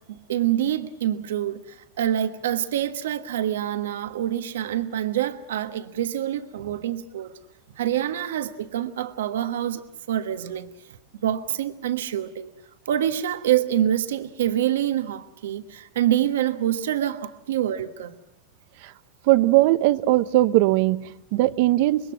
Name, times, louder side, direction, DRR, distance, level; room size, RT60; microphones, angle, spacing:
voice 1, 0.1-1.6 2.0-7.3 7.8-9.8 10.1-10.7 11.2-12.5 12.9-18.2, right 11 dB, 80° right, 1.3 m, -26 dB
voice 2, 19.3-22.1, right 17 dB, 60° right, 0.9 m, -19 dB
25.5 x 21.5 x 6.2 m
hypercardioid pair, 110°, 0 cm